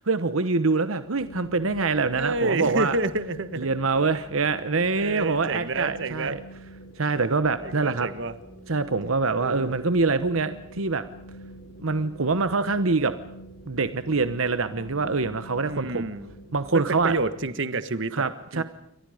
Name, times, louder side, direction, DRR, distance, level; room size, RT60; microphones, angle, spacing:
voice 1, 0.1-3.0 3.6-6.4 7.0-8.1 8.7-11.0 11.8-13.1 13.7-16.0 16.5-17.1 18.1-18.6, right 4 dB, 80° right, 11 dB, 1.1 m, -25 dB
sound 1, 1.2-17.4, equal, 90° left, 3.6 m, -45 dB
voice 2, 1.9-3.7 5.0-6.4 7.6-8.3 9.4-9.8 15.7-16.3 16.7-18.6, right 2 dB, 65° right, 12 dB, 1.5 m, -29 dB
29.0 x 24.0 x 5.1 m, 0.79 s
head